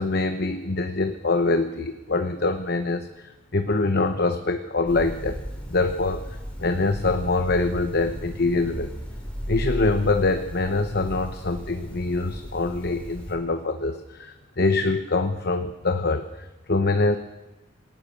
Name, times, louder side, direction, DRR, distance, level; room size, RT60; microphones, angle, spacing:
voice 1, 0.0-5.4 5.7-8.9 9.5-17.2, left 3 dB, 45° left, 8 dB, 0.9 m, -24 dB
sound 1, 4.8-13.3, equal, 5° left, 4.9 m, -35 dB
27.0 x 18.5 x 6.7 m, 1.1 s
head